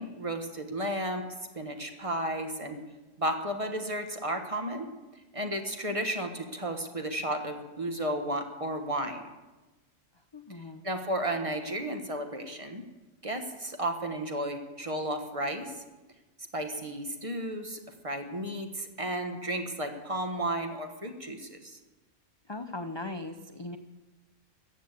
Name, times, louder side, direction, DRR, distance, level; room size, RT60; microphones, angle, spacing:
voice 1, 0.0-2.8 3.2-4.9 5.3-9.3 10.8-12.8 13.2-15.7 16.5-21.8, right 1 dB, 25° right, 5 dB, 1.3 m, -33 dB
voice 2, 10.3-10.8 22.5-23.8, left 2 dB, 35° left, 6 dB, 0.4 m, -39 dB
14.5 x 8.2 x 8.2 m, 1.1 s
omnidirectional pair, 1.3 m